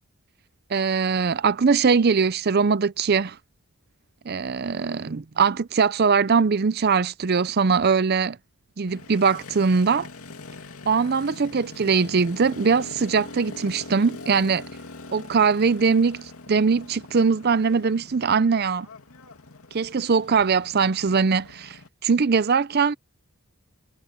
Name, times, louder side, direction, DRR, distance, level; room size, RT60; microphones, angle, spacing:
voice 1, 0.7-3.4 4.3-8.4 8.8-10.1 10.9-14.6 15.1-18.9 19.7-21.8 22.0-22.9, right 5 dB, 45° right, 0.5 m, -21 dB
Motorcycle, 8.9-21.9, left 3 dB, 75° left, 2.5 m, -42 dB
head